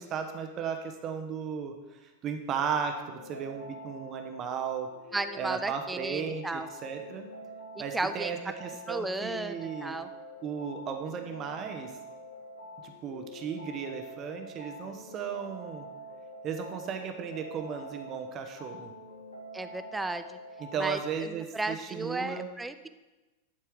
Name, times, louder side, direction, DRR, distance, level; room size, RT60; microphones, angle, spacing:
voice 1, 0.0-4.9 5.4-7.2 7.8-10.0 10.4-11.9 12.8-15.9 16.4-18.9 20.6-22.5, right 7 dB, 30° right, 5 dB, 0.9 m, -35 dB
sound 1, 3.1-21.1, equal, 80° left, 1.1 m, -46 dB
voice 2, 5.1-6.7 7.9-8.4 8.9-10.1 19.5-20.4 20.8-22.9, right 2 dB, 10° right, 10 dB, 0.4 m, -34 dB
11.5 x 4.5 x 4.6 m, 1.1 s
figure-of-eight pair, 90°, 0 cm